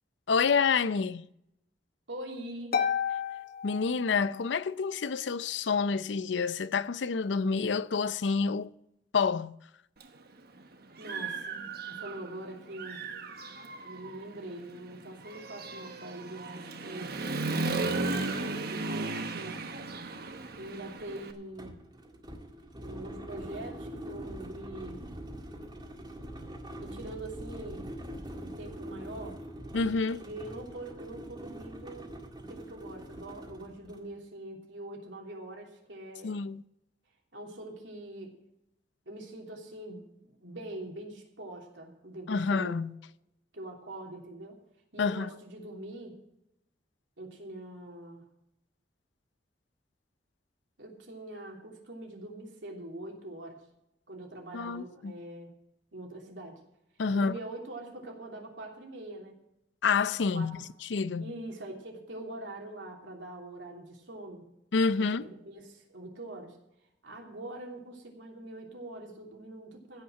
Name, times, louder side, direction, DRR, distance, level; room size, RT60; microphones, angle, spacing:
voice 1, 0.3-1.3 3.6-8.7 9.1-9.5 29.7-30.2 36.2-36.6 42.3-42.9 45.0-45.3 54.5-55.1 57.0-57.4 59.8-60.5 60.9-61.3 64.7-65.3, left 5 dB, 75° left, 0.5 m, -28 dB
voice 2, 2.1-2.8 11.0-13.0 13.8-19.6 20.6-21.8 22.8-25.0 26.8-27.9 28.4-29.4 30.2-36.4 37.3-38.3 39.0-42.8 43.5-44.6 44.9-46.2 47.2-48.2 50.8-53.6 54.1-55.5 55.9-56.6 57.1-59.4 60.3-60.6 61.2-64.4 65.0-66.6 67.0-70.0, right 1 dB, 80° right, 3.0 m, -43 dB
Harp, 2.7-4.6, left 7 dB, 55° left, 1.0 m, -32 dB
Human voice / Motorcycle, 10.0-10.1 10.6-12.4 12.7-21.3, right 3 dB, 55° right, 1.1 m, -35 dB
sound 1, 19.6-34.1, right 1 dB, 25° right, 1.9 m, -44 dB
16.0 x 5.6 x 7.6 m
head